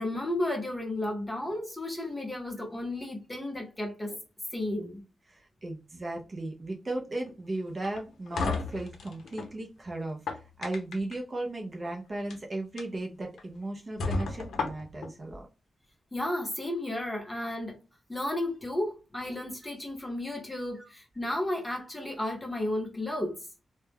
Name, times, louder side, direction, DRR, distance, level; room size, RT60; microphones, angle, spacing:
voice 1, 0.0-4.2 4.5-5.0 16.1-17.8 18.1-23.4, left 1 dB, 15° left, 0.7 m, -33 dB
voice 2, 5.3-15.5 20.7-20.9, right 2 dB, 30° right, 0.4 m, -36 dB
sound 1, 7.8-9.5 10.1-11.1 12.1-12.4 12.8-12.9 13.4-13.5 14.0-15.1, left 4 dB, 80° left, 0.5 m, -33 dB
2.2 x 2.1 x 3.3 m
wide cardioid pair, 145°, 0 cm